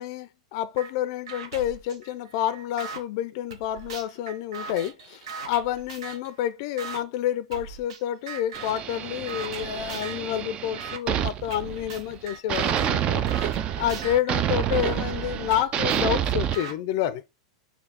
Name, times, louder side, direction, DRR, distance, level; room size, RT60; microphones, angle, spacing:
voice 1, 0.0-17.2, left 11 dB, 55° left, 0.4 m, -29 dB
sound 1, 0.8-0.9 1.3-3.0 3.5-6.3 6.8-7.0 7.5-8.0 8.3-8.9 9.3-10.3 10.8-11.0 11.5-15.0 15.5-16.7, right 5 dB, 70° right, 0.8 m, -40 dB
sound 2, 8.5-12.2 12.5-16.6, right 10 dB, 35° right, 0.4 m, -28 dB
4.3 x 2.7 x 4.0 m
hypercardioid pair, 105°, 3 cm